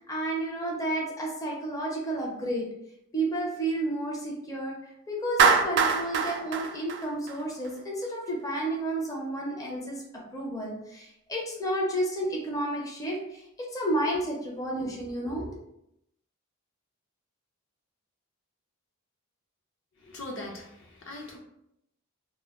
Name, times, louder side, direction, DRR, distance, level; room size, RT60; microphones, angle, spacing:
voice 1, 0.0-2.7 3.1-4.7 5.1-15.6, right 1 dB, 15° left, -2 dB, 0.5 m, -31 dB
Clapping, 5.4-7.7, right 5 dB, 55° right, 0.3 m, -24 dB
voice 2, 20.0-21.4, left 1 dB, 60° left, 0 dB, 0.6 m, -40 dB
2.1 x 2.1 x 3.5 m, 0.80 s
head